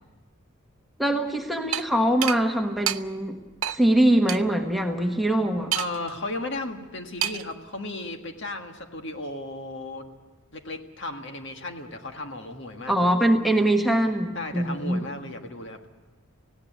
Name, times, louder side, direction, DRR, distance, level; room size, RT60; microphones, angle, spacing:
voice 1, 1.0-3.4 3.7-5.7 12.9-15.0, right 1 dB, ahead, 3 dB, 1.3 m, -23 dB
sound 1, 1.7-1.9 2.2-2.4 2.9-3.0 3.6-3.8 4.3-4.4 5.7-6.1 7.2-7.5, right 11 dB, 75° right, 0.6 m, -27 dB
voice 2, 5.7-10.1 10.5-13.1 14.3-15.9, left 2 dB, 55° left, 5 dB, 1.7 m, -35 dB
18.5 x 16.5 x 9.2 m, 1.2 s
head